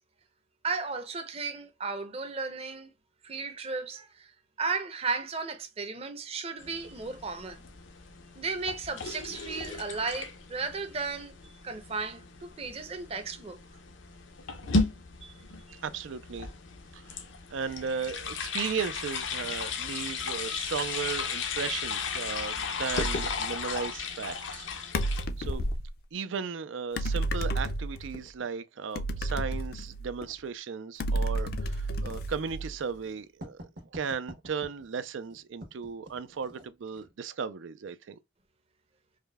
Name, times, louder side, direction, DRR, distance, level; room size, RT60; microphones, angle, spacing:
voice 1, 0.6-2.9 3.2-4.3 4.6-7.6 8.4-11.3 11.6-13.6 15.2-15.3 15.7-15.8, right 4 dB, 30° right, 0.6 m, -35 dB
sound 1, 6.6-25.2, left 4 dB, 85° left, 0.7 m, -35 dB
voice 2, 15.8-16.5 16.9-17.2 17.5-24.7 25.4-25.7 26.1-38.2, right 6 dB, 90° right, 0.4 m, -36 dB
sound 2, 22.9-23.4 24.9-25.9 27.0-28.2 29.0-30.3 31.0-32.9, right 1 dB, 55° left, 0.4 m, -31 dB
Writing, 31.2-37.1, equal, 65° right, 1.2 m, -50 dB
4.9 x 2.2 x 2.2 m
head